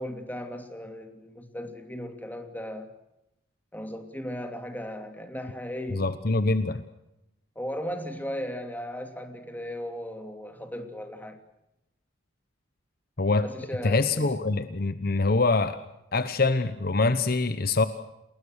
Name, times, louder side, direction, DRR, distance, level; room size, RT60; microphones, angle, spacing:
voice 1, 0.0-2.9 3.7-6.0 7.5-11.4 13.4-14.3, equal, 10° left, 6 dB, 2.9 m, -36 dB
voice 2, 5.9-6.8 13.2-13.5 13.8-15.8 16.1-17.8, left 3 dB, 50° left, 12 dB, 1.0 m, -24 dB
29.5 x 20.5 x 6.5 m, 0.87 s
head